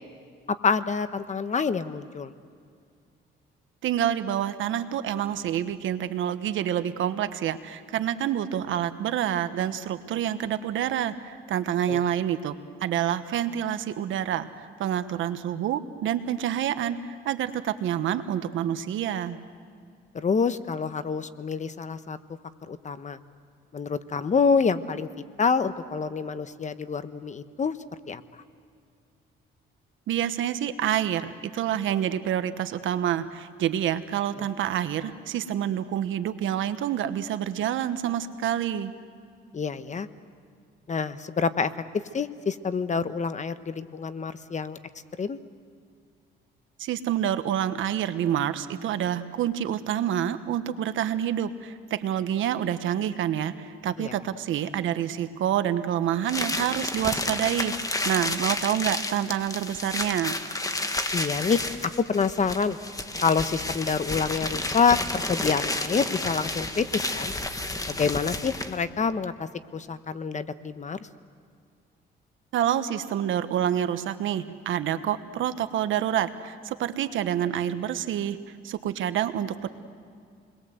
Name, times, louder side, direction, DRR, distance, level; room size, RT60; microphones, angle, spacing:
voice 1, 0.6-2.3 11.9-12.0 20.1-22.2 22.7-23.2 23.7-25.1 25.4-27.7 28.1-28.2 39.5-40.1 40.9-41.7 42.1-44.8 45.2-45.4 54.0-54.1 61.1-62.8 63.2-67.3 67.9-71.0, left 5 dB, 35° left, 12 dB, 1.1 m, -27 dB
voice 2, 3.8-14.5 14.8-19.4 30.1-38.9 46.8-57.7 58.0-60.3 72.5-78.4 78.6-79.7, right 10 dB, 80° right, 11 dB, 1.3 m, -27 dB
sound 1, 56.3-68.8, left 2 dB, 15° left, 1.7 m, -31 dB
29.0 x 21.5 x 8.0 m, 2.3 s
cardioid pair, 90°, 20 cm